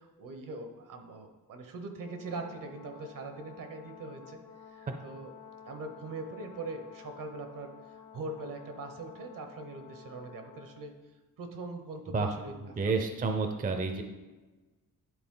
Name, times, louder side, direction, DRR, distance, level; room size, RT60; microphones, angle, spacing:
voice 1, 0.0-4.4 4.7-5.3 5.7-10.9 11.4-12.5 12.9-13.2, right 3 dB, 70° right, 5 dB, 1.0 m, -42 dB
Brass instrument, 2.0-10.9, left 8 dB, 70° left, 0.9 m, -51 dB
voice 2, 12.6-14.0, right 4 dB, 25° right, 5 dB, 0.5 m, -30 dB
10.0 x 3.9 x 3.8 m, 1.2 s
wide cardioid pair, 135°, 34 cm